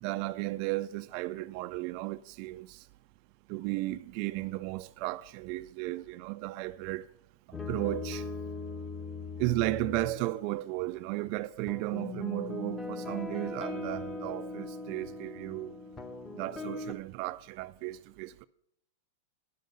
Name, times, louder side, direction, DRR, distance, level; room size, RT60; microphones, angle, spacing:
voice 1, 0.0-2.8 3.5-7.1 7.5-8.3 9.4-15.7 16.3-18.4, right 18 dB, 50° right, 0.3 m, -34 dB
sound 1, 7.5-10.5 11.7-16.9, left 3 dB, 15° left, 1.0 m, -39 dB
10.5 x 6.7 x 6.5 m
hypercardioid pair, 120°, 0 cm